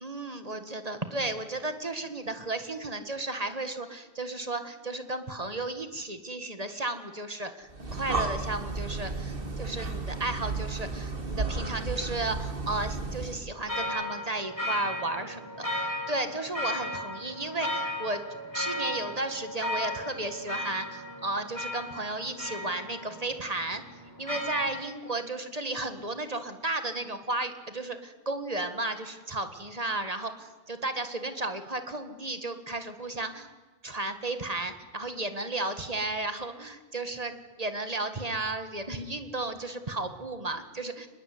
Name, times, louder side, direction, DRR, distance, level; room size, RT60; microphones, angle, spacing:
voice 1, 0.0-18.2 18.5-23.8 24.2-33.5 33.8-41.1, right 2 dB, 35° right, 9 dB, 2.0 m, -34 dB
Breathing, 7.7-13.5, right 3 dB, 60° right, 2.7 m, -33 dB
church bell, 13.7-24.8, left 1 dB, 15° left, 5.7 m, -35 dB
25.0 x 21.0 x 9.7 m, 1.3 s
omnidirectional pair, 1.1 m